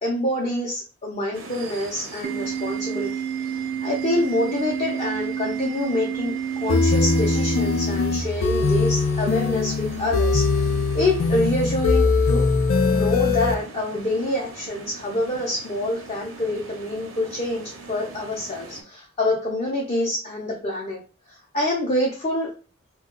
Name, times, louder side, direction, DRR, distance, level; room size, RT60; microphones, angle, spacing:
voice 1, 0.0-12.4 12.8-21.0 21.3-22.5, left 1 dB, 30° left, -3 dB, 0.6 m, -26 dB
sound 1, 1.3-18.8, right 3 dB, 90° right, 0.6 m, -42 dB
Organ, 2.2-8.2, right 8 dB, 55° right, 0.3 m, -29 dB
sound 2, 6.7-13.5, left 4 dB, 80° left, 0.4 m, -21 dB
2.2 x 2.2 x 3.7 m, 0.36 s
head